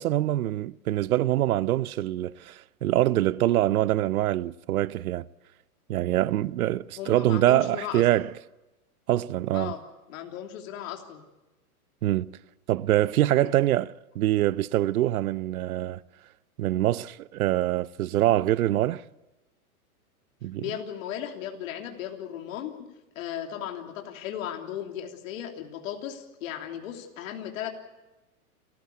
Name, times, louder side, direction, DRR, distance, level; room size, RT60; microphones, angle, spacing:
voice 1, 0.0-5.2 5.9-8.3 9.1-9.7 12.0-12.3 12.7-16.0 16.6-19.0 20.4-20.7, right 14 dB, 75° right, 0.8 m, -24 dB
voice 2, 7.0-8.0 9.5-9.8 10.1-11.2 20.6-22.9 23.1-27.7, left 10 dB, 60° left, 3.2 m, -36 dB
29.5 x 14.5 x 8.3 m
hypercardioid pair, 140°, 44 cm